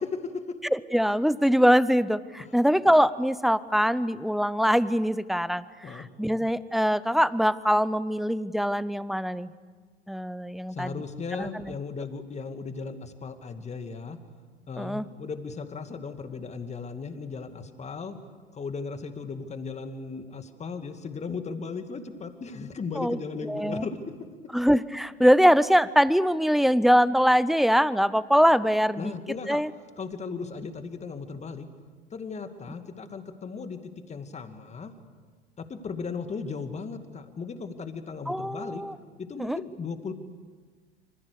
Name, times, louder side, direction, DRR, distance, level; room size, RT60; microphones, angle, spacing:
voice 1, 0.7-9.5 10.1-11.0 11.4-11.7 14.8-15.1 23.0-23.9 24.5-29.1 29.5-29.7 38.3-39.0 39.4-39.6, equal, ahead, 18 dB, 0.6 m, -23 dB
voice 2, 10.7-14.2 14.7-18.2 18.5-24.0 29.0-29.6 30.0-31.7 32.1-34.9 35.6-38.8 39.3-40.1, left 5 dB, 20° left, 8 dB, 2.2 m, -36 dB
26.0 x 26.0 x 6.8 m, 1.5 s
figure-of-eight pair, 80°, 31 cm